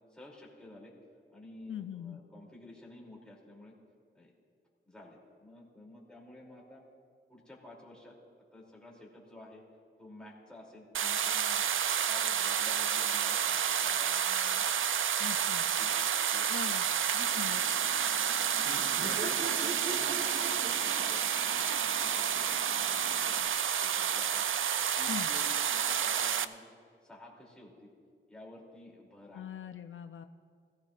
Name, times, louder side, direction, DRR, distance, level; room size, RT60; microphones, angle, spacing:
voice 1, 0.1-0.9 1.3-3.7 4.1-4.3 4.8-6.8 7.3-8.2 8.5-9.6 10.0-11.7 12.0-14.6 15.2-15.9 16.3-17.0 18.1-23.5 23.8-24.4 25.0-26.7 27.0-27.9 28.3-29.4, left 1 dB, 5° left, -4 dB, 2.7 m, -52 dB
voice 2, 1.7-2.2 15.2-15.6 16.5-16.9 17.1-17.6 25.1-25.3 29.3-30.3, left 9 dB, 75° left, 8 dB, 0.4 m, -41 dB
sound 1, 10.9-26.4, right 8 dB, 75° right, 0.4 m, -30 dB
Laughter, 17.2-23.5, right 2 dB, 60° right, 1.0 m, -44 dB
20.0 x 15.0 x 2.4 m, 2.1 s
wide cardioid pair, 145°, 21 cm